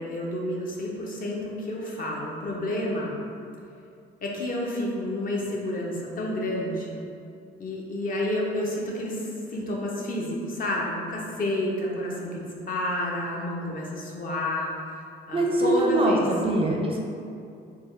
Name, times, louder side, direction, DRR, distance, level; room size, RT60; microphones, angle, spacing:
voice 1, 0.0-3.2 4.2-7.0 7.6-15.0 15.3-16.2, left 1 dB, 45° left, -3 dB, 0.6 m, -30 dB
voice 2, 15.3-17.0, right 1 dB, 30° right, -1 dB, 0.4 m, -23 dB
3.5 x 2.2 x 3.2 m, 2.5 s
cardioid pair, 90°, 20 cm